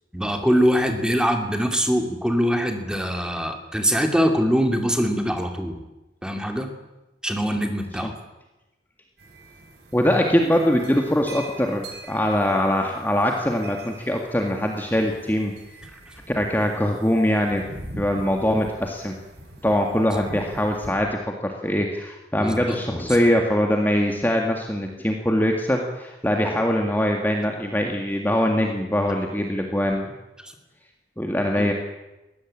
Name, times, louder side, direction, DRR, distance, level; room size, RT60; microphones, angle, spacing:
voice 1, 0.1-5.8 6.2-6.7 7.2-8.1 22.4-23.1 30.4-30.5 31.6-31.7, equal, 5° right, 4 dB, 2.6 m, -23 dB
sound 1, 9.2-20.9, right 1 dB, 65° right, 6.0 m, -43 dB
voice 2, 9.9-15.5 16.3-17.7 18.0-19.2 19.6-30.1 31.2-31.7, equal, 10° left, 2 dB, 2.0 m, -22 dB
21.5 x 17.0 x 8.7 m, 1.0 s
head